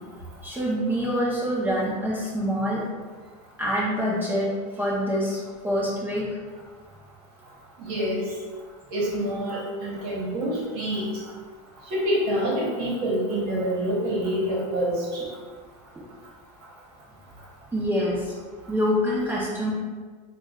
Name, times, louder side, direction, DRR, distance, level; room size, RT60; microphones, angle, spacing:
voice 1, 0.4-2.8 3.6-4.5 4.8-6.4 17.7-18.3 18.7-19.7, equal, 10° right, -7 dB, 0.7 m, -25 dB
voice 2, 7.8-8.2 8.9-11.1 11.9-15.2, equal, 55° right, -5 dB, 1.1 m, -26 dB
6.0 x 2.3 x 2.3 m, 1.5 s
supercardioid pair, 125°, 19 cm